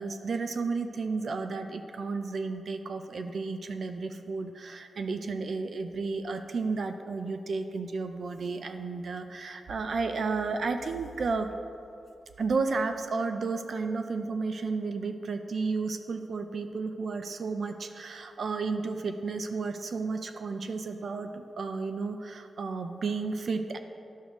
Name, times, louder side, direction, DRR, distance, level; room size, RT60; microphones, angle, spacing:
voice 1, 0.0-11.5 12.4-23.8, right 4 dB, 50° right, 7 dB, 0.4 m, -32 dB
12.0 x 6.4 x 3.0 m, 2.6 s
wide cardioid pair, 175°, 0 cm